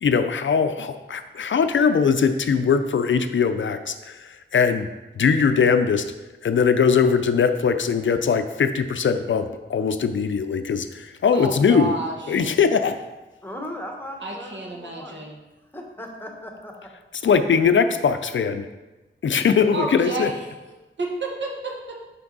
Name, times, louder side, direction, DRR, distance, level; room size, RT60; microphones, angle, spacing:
voice 1, 0.0-4.9 5.2-6.1 6.4-11.9 12.3-12.9 17.2-18.7 19.2-20.3, left 6 dB, 70° left, 9 dB, 0.4 m, -21 dB
voice 2, 11.3-12.5 14.2-15.4 19.7-20.3 20.6-20.7 21.0-22.0, right 2 dB, 65° right, -1 dB, 1.3 m, -30 dB
voice 3, 13.4-15.2 15.7-16.7, left 1 dB, 10° left, 1 dB, 1.1 m, -37 dB
5.9 x 5.8 x 3.9 m, 1.1 s
wide cardioid pair, 100°, 21 cm